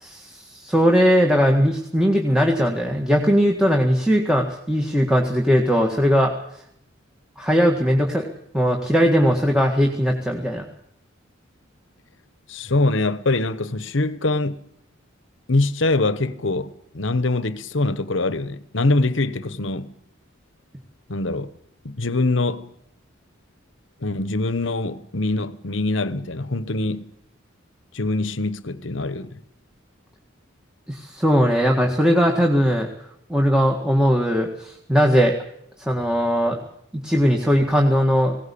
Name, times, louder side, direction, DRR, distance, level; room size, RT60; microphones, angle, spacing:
voice 1, 0.0-6.3 7.4-8.3 8.5-10.7 30.9-32.9 33.3-35.4 35.8-36.6 36.9-38.4, equal, 5° right, 1.8 m, -19 dB
voice 2, 12.5-14.6 15.5-19.9 21.1-21.5 21.8-22.6 24.0-27.1 27.9-29.4, left 2 dB, 65° left, 1.2 m, -23 dB
20.0 x 17.5 x 8.6 m
head